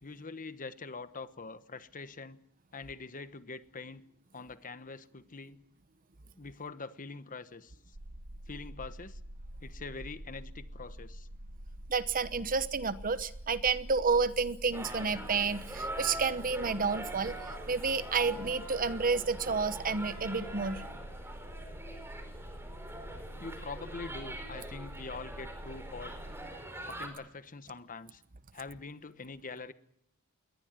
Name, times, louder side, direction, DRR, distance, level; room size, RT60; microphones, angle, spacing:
voice 1, 0.0-2.4 2.7-4.0 4.3-5.6 6.3-8.0 8.5-9.2 9.6-11.3 23.4-26.1 26.8-28.2 28.5-29.7, left 4 dB, 35° left, 12 dB, 1.1 m, -44 dB
sound 1, 7.9-26.4, equal, 80° right, 1.5 m, -46 dB
voice 2, 11.9-20.8, right 4 dB, 40° right, 14 dB, 1.0 m, -30 dB
sound 2, 14.7-27.1, right 1 dB, 10° right, 4.6 m, -43 dB
22.0 x 18.5 x 9.3 m, 0.73 s
head